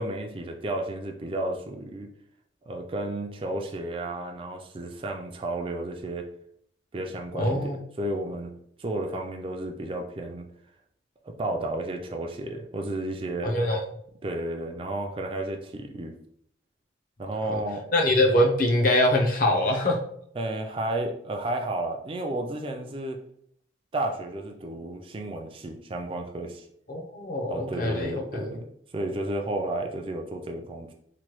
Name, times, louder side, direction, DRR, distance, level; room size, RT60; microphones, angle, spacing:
voice 1, 0.0-2.1 2.7-6.3 6.9-8.5 8.8-10.5 11.2-13.5 14.2-16.2 17.2-17.9 20.4-23.2 23.9-26.7 27.5-28.7 28.9-30.9, right 1 dB, 30° right, 3 dB, 0.3 m, -32 dB
voice 2, 7.3-7.8 13.4-13.8 17.5-17.6 17.9-20.0 26.9-28.2, left 1 dB, 45° left, 1 dB, 0.5 m, -23 dB
3.0 x 2.1 x 3.0 m, 0.70 s
head